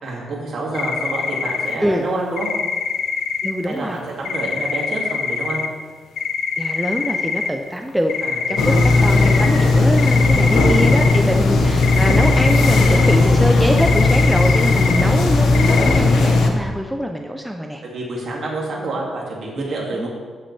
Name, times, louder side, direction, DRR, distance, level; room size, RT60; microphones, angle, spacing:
voice 1, 0.0-2.5 3.7-5.6 8.2-8.9 10.2-10.5 17.8-20.1, right 2 dB, 55° right, -3 dB, 2.3 m, -28 dB
sound 1, 0.7-1.8 2.4-3.6 4.2-5.7 6.2-7.5 8.1-9.5 10.0-11.2 11.8-13.2 13.8-15.0 15.5-16.0, left 6 dB, 75° left, 0.6 m, -24 dB
voice 2, 3.4-4.0 6.6-8.1 8.5-17.8 20.0-20.1, equal, ahead, 3 dB, 0.5 m, -24 dB
sound 2, 8.6-16.5, left 3 dB, 90° left, 1.1 m, -15 dB
12.5 x 6.8 x 3.3 m, 1.5 s
wide cardioid pair, 150°, 0 cm